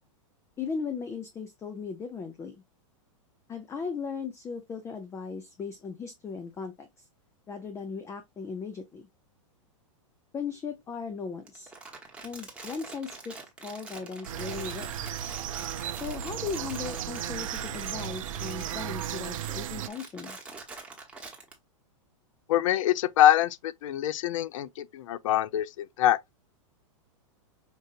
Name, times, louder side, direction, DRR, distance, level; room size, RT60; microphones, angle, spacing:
voice 1, 0.6-2.6 3.5-7.0 7.5-9.1 10.3-11.7 12.2-13.4 13.6-14.9 15.9-20.4, left 5 dB, 15° left, 0.5 m, -37 dB
Crumpling crinkling, 11.5-21.5, right 3 dB, 5° right, 1.1 m, -45 dB
sound 1, 14.2-19.9, right 11 dB, 75° right, 0.4 m, -35 dB
voice 2, 22.5-26.2, left 12 dB, 70° left, 0.4 m, -24 dB
5.3 x 2.5 x 2.4 m
hypercardioid pair, 130°, 17 cm